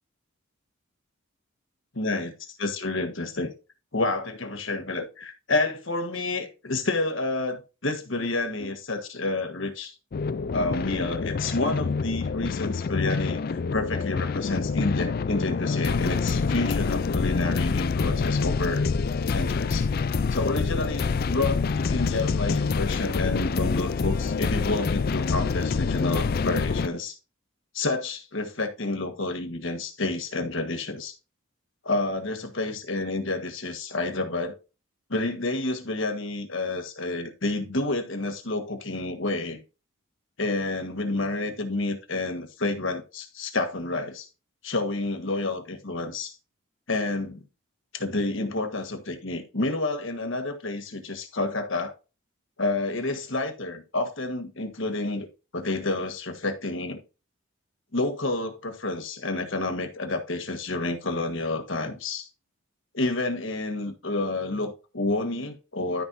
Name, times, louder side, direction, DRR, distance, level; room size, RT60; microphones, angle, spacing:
voice 1, 2.0-2.3 2.6-3.5 3.9-9.9 10.5-18.8 19.3-19.9 20.3-27.2 27.7-31.2 31.8-34.6 35.1-39.6 40.4-44.3 44.6-46.4 46.9-47.4 47.9-51.9 52.6-55.3 55.5-57.0 57.9-62.3 62.9-66.0, left 2 dB, 60° left, 1.5 m, -29 dB
sound 1, 10.1-26.9, left 4 dB, 45° left, 0.3 m, -26 dB
13.0 x 5.4 x 2.7 m
head